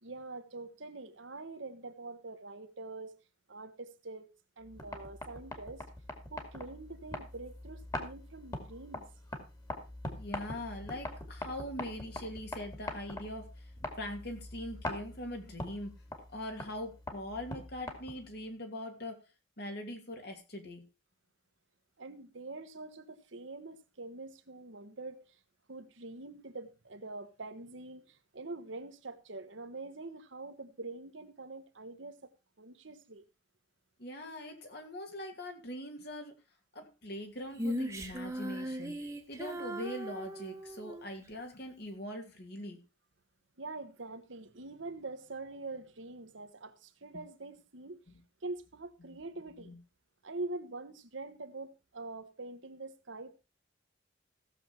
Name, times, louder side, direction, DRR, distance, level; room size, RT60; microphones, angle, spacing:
voice 1, 0.0-3.1 3.5-4.3 4.6-5.8 6.3-9.0 22.0-25.4 25.7-32.3 32.6-33.2 43.6-48.0 48.4-49.7 50.2-53.4, right 3 dB, 70° right, 1.3 m, -44 dB
sound 1, 4.6-18.4, left 1 dB, 20° left, 2.3 m, -43 dB
voice 2, 10.2-13.7 14.0-15.9 16.3-19.2 19.6-20.8 34.0-36.3 36.7-42.8 48.1-48.2 49.6-49.8, left 1 dB, 55° left, 2.7 m, -42 dB
Female singing, 37.5-41.1, equal, 15° right, 1.4 m, -38 dB
16.0 x 7.2 x 4.3 m
head